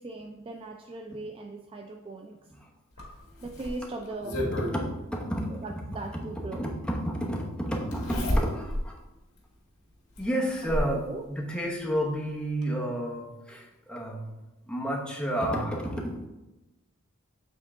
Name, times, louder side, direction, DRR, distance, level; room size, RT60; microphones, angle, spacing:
voice 1, 0.0-2.4 3.4-4.4 5.5-6.7 10.6-11.2, right 2 dB, 25° right, 3 dB, 0.4 m, -39 dB
Zipper (clothing), 3.0-4.8 6.2-6.3 7.9-8.9 9.4-9.5 10.2-11.0 12.2-12.3 12.6-12.7, left 1 dB, 75° left, 1.6 m, -30 dB
voice 2, 4.4-5.5 6.6-8.9 10.2-14.2 14.7-16.1, equal, 5° left, -2 dB, 1.0 m, -31 dB
7.7 x 3.7 x 3.6 m, 1.0 s
head